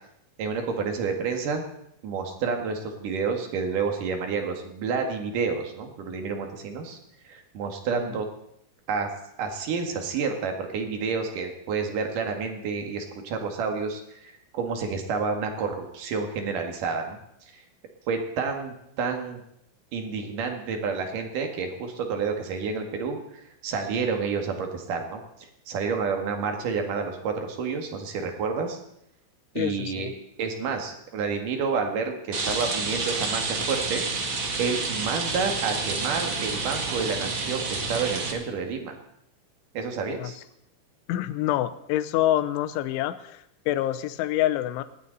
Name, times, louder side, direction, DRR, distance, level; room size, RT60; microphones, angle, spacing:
voice 1, 0.4-1.6 2.0-7.0 7.2-8.3 8.9-9.1 9.4-17.2 17.5-17.6 18.1-19.4 19.9-25.2 25.7-28.8 29.5-30.1 30.4-34.1 34.6-39.0 39.7-40.4, right 5 dB, 55° right, 4 dB, 2.9 m, -29 dB
voice 2, 29.6-30.1 40.2-40.3 41.1-44.8, left 13 dB, 85° left, 12 dB, 3.2 m, -27 dB
Rain, 32.3-38.3, right 3 dB, 70° right, 1.2 m, -29 dB
19.0 x 16.5 x 4.1 m, 0.76 s
omnidirectional pair, 5.5 m